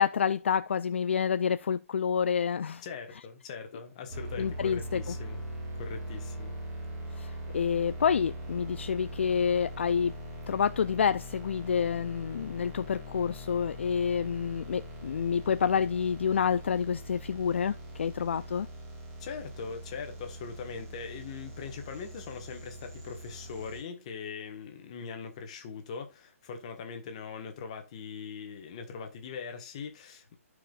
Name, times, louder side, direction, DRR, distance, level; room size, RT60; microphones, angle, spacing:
voice 1, 0.0-2.8 4.4-5.1 7.1-10.1 10.5-18.7, left 7 dB, 50° left, 0.4 m, -28 dB
voice 2, 2.8-5.4 5.7-6.6 19.2-30.3, left 6 dB, 25° left, 1.3 m, -41 dB
sound 1, 4.1-23.8, equal, 15° right, 2.3 m, -42 dB
14.5 x 5.0 x 2.4 m
hypercardioid pair, 175°, 8 cm